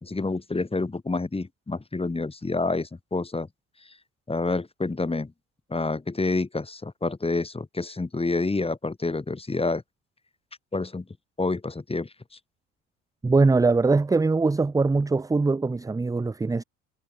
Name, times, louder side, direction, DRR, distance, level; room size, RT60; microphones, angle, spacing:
voice 1, 0.0-3.5 4.3-5.3 5.7-9.8 10.7-11.0 11.4-12.1, left 3 dB, 15° left, 3.2 m, -28 dB
voice 2, 13.2-16.6, right 3 dB, 10° right, 0.6 m, -22 dB
hypercardioid pair, 65°, 35 cm